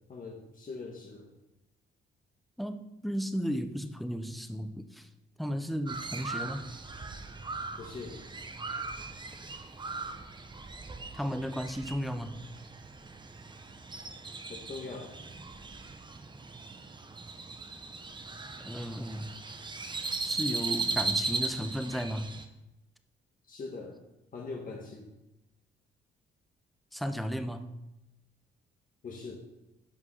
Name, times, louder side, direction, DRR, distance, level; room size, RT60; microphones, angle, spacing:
voice 1, 0.1-1.3 7.8-8.2 14.5-15.1 23.5-24.0 24.3-25.1 29.0-29.5, left 4 dB, 45° left, 0 dB, 1.6 m, -42 dB
voice 2, 2.6-5.1 5.4-6.7 11.1-12.4 18.6-19.3 20.2-22.3 26.9-27.7, equal, ahead, 9 dB, 0.9 m, -34 dB
Crow, 5.9-22.4, right 3 dB, 25° right, 1.0 m, -38 dB
11.0 x 5.9 x 5.6 m, 0.94 s
cardioid pair, 90°, 20 cm